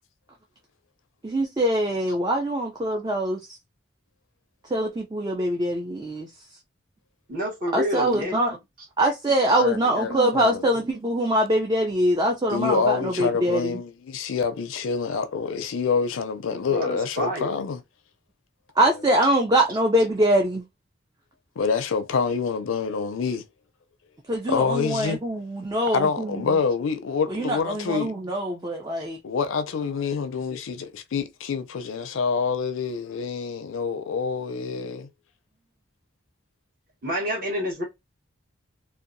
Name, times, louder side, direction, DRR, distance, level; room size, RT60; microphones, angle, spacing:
voice 1, 1.2-3.5 4.7-6.3 7.7-8.6 9.0-13.8 18.8-20.7 24.3-26.4 27.3-29.2, right 1 dB, 20° right, 0.3 m, -23 dB
voice 2, 7.3-8.4 16.5-17.5 37.0-37.8, equal, 45° right, 1.2 m, -28 dB
voice 3, 9.5-10.7 12.5-17.8 21.6-23.4 24.5-25.2 25.9-28.1 29.2-35.1, left 5 dB, 80° left, 0.4 m, -27 dB
2.7 x 2.2 x 2.5 m
head